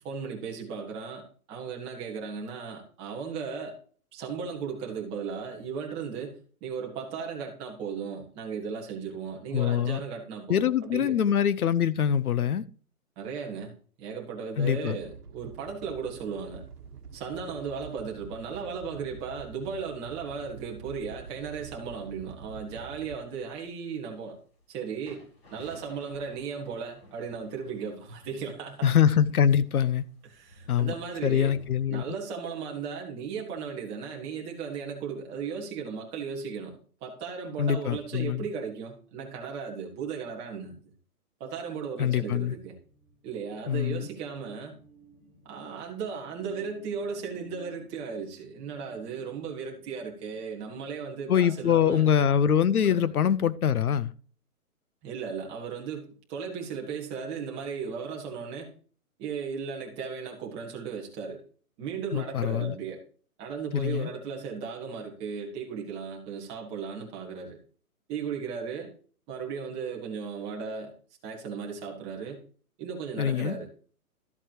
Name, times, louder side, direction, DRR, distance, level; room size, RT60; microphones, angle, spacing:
voice 1, 0.0-3.8 4.1-11.1 13.2-13.7 14.0-16.6 17.1-24.4 24.7-25.2 25.5-28.9 30.2-31.6 31.9-40.7 41.4-42.7 43.2-44.8 45.4-52.1 52.8-53.1 55.0-58.7 59.2-61.4 61.8-63.0 63.4-67.6 68.1-68.9 69.3-70.9 71.2-72.4 72.8-73.7, right 6 dB, 10° right, 1.5 m, -36 dB
voice 2, 9.5-10.0 10.5-12.6 14.6-15.0 28.8-30.0 30.7-30.9 31.2-32.0 37.6-38.4 42.0-42.5 43.7-44.1 51.3-54.1 62.1-62.7 63.7-64.1 73.2-73.6, left 9 dB, 70° left, 0.9 m, -24 dB
Animal, 15.0-23.2, right 6 dB, 85° right, 1.2 m, -46 dB
sound 1, 15.5-31.9, equal, 45° left, 6.1 m, -57 dB
sound 2, 42.6-51.6, right 2 dB, 5° left, 1.7 m, -56 dB
13.5 x 8.1 x 2.9 m
hypercardioid pair, 170°, 45 cm